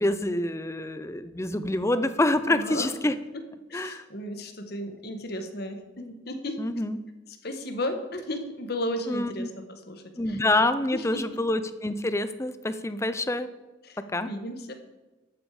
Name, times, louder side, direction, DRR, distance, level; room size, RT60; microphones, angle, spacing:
voice 1, 0.0-3.1 3.7-4.0 6.6-7.0 9.1-9.5 10.2-13.5 14.1-14.3, left 1 dB, 15° left, 12 dB, 0.5 m, -26 dB
voice 2, 2.5-2.9 3.7-6.6 7.3-10.4 10.9-11.2 13.8-14.7, left 1 dB, 55° left, 6 dB, 1.4 m, -34 dB
12.5 x 8.8 x 4.9 m, 1.2 s
head